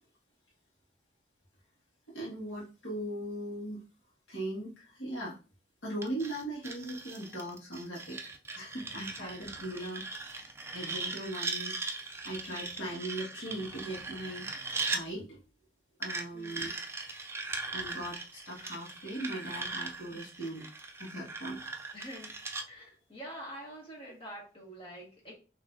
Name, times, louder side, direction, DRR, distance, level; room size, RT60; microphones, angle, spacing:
voice 1, 2.1-3.8 4.3-5.4 5.8-8.2 8.5-10.4 10.7-14.5 14.9-15.4 16.0-16.7 17.7-20.7 21.0-21.6, right 1 dB, 80° left, -4 dB, 1.7 m, -39 dB
sound 1, 6.0-15.0 16.0-22.7, right 3 dB, 15° right, 0.4 m, -39 dB
voice 2, 21.9-22.3 22.7-25.3, equal, 30° left, -3 dB, 1.5 m, -46 dB
5.9 x 3.1 x 2.6 m, 0.34 s
head